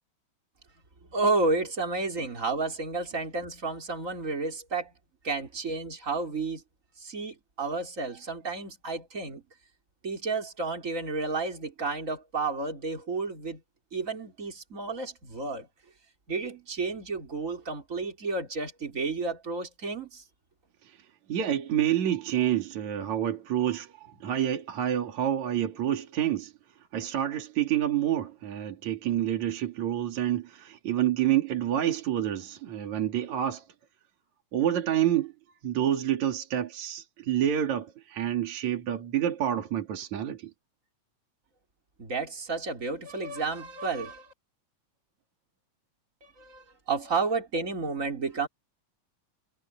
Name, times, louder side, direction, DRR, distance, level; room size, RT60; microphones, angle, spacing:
voice 1, 1.1-4.9 5.2-6.6 7.0-9.4 10.0-13.6 13.9-15.7 16.3-20.2 42.0-44.3 46.2-48.5, right 3 dB, 25° right, 4.3 m, -31 dB
voice 2, 20.8-26.5 26.8-33.7 34.5-35.3 35.6-40.5, right 11 dB, 70° right, 3.5 m, -28 dB
omnidirectional pair, 3.4 m